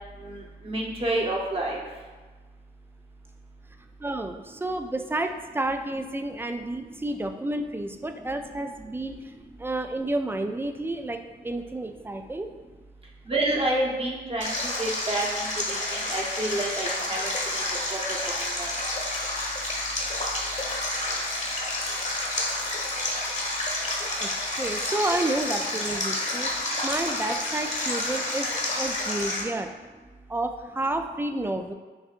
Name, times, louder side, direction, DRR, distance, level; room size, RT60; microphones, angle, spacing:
voice 1, 0.2-1.8 13.3-18.0 18.6-18.7, right 1 dB, 30° right, -3 dB, 1.0 m, -29 dB
voice 2, 4.0-9.2 9.6-12.5 24.2-28.5 28.8-29.7 30.3-31.7, right 2 dB, 10° right, 6 dB, 0.4 m, -30 dB
Stream, 14.4-29.4, left 1 dB, 40° left, 1.2 m, -29 dB
6.2 x 2.6 x 2.5 m, 1.4 s
cardioid pair, 55°, 18 cm